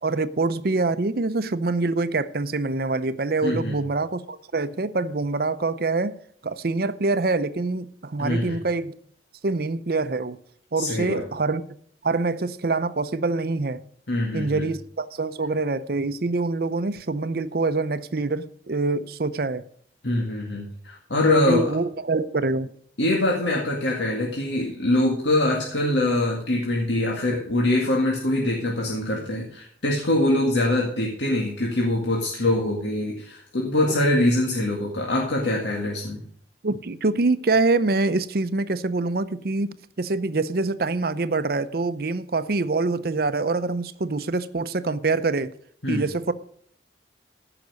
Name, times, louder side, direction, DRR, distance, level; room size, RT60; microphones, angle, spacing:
voice 1, 0.0-6.2 6.4-9.0 9.4-10.4 10.7-11.6 12.0-13.8 14.3-19.6 21.3-22.7 33.9-34.0 36.6-45.5 45.9-46.3, right 3 dB, 55° right, 0.6 m, -25 dB
voice 2, 3.4-3.8 8.2-8.6 10.8-11.2 14.1-14.6 20.0-21.7 23.0-36.2 45.8-46.0, left 1 dB, 85° left, 2.0 m, -23 dB
14.5 x 5.9 x 6.4 m
head